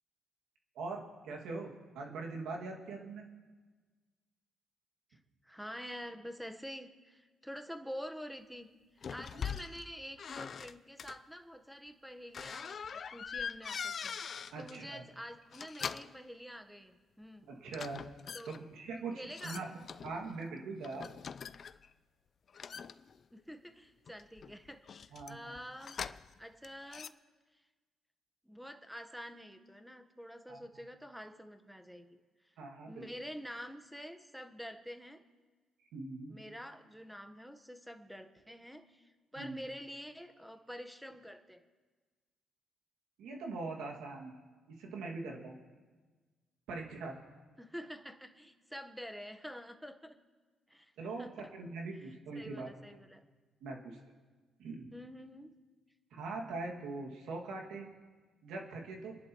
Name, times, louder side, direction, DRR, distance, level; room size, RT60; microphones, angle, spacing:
voice 1, 0.7-3.2 14.5-15.0 17.4-18.0 18.5-21.1 25.1-25.6 30.5-30.8 32.6-33.1 35.9-36.3 39.4-39.6 43.2-44.4 44.7-45.6 46.7-47.2 51.0-52.7 53.6-54.0 54.6-54.9 56.1-57.9 58.4-59.2, right 3 dB, 85° right, 0 dB, 2.2 m, -42 dB
voice 2, 5.4-8.7 9.0-14.2 14.6-17.5 18.3-18.6 19.0-19.6 23.3-24.8 25.3-26.0 26.4-27.1 28.4-32.2 32.9-35.2 36.3-41.6 47.6-50.2 50.7-50.9 51.2-51.3 52.3-53.2 54.9-55.6, equal, ahead, 7 dB, 1.2 m, -47 dB
sound 1, 9.0-9.9 10.2-11.2 12.3-14.8 15.4-16.2 17.7-18.6 19.3-20.4 20.8-21.9 22.5-23.5 24.1-26.4 26.6-27.1, left 7 dB, 50° left, 0.4 m, -42 dB
28.5 x 10.5 x 3.1 m, 1.4 s
cardioid pair, 90°, 0 cm